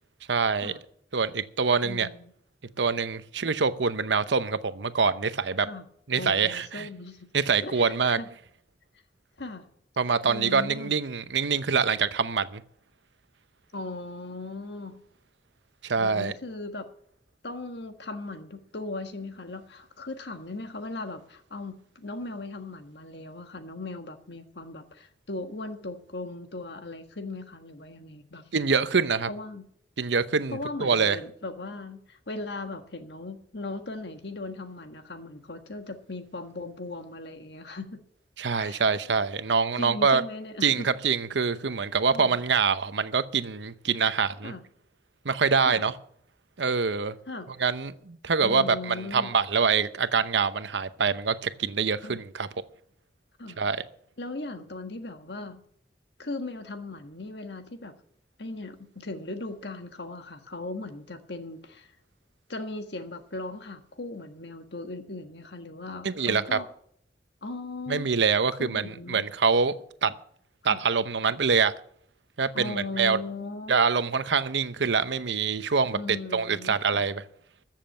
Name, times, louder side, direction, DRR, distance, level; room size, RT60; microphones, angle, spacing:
voice 1, 0.3-0.7 1.1-2.1 2.8-5.7 6.1-6.9 7.3-8.2 10.0-12.6 15.8-16.3 28.5-29.3 30.0-31.2 38.4-40.2 40.6-44.5 45.2-45.9 46.6-47.1 47.6-52.5 53.6-53.8 66.0-66.6 67.9-69.7 70.0-70.1 70.6-71.7 72.4-73.2 73.7-77.2, right 5 dB, 85° right, 0.8 m, -25 dB
voice 2, 1.8-2.3 5.6-5.8 6.2-7.2 7.6-8.3 9.4-9.7 10.3-10.9 13.7-15.0 16.0-16.9 17.4-28.4 29.3-29.6 30.5-38.0 38.6-38.8 39.8-40.9 42.1-42.4 44.4-44.6 45.6-45.9 47.3-47.5 48.4-49.3 52.0-52.2 53.4-53.6 54.2-55.6 56.2-57.9 58.4-61.9 62.5-66.7 67.4-68.1 68.6-69.2 70.7-70.8 72.5-73.8 75.9-77.1, left 2 dB, 70° left, 1.5 m, -38 dB
14.0 x 7.4 x 7.6 m
head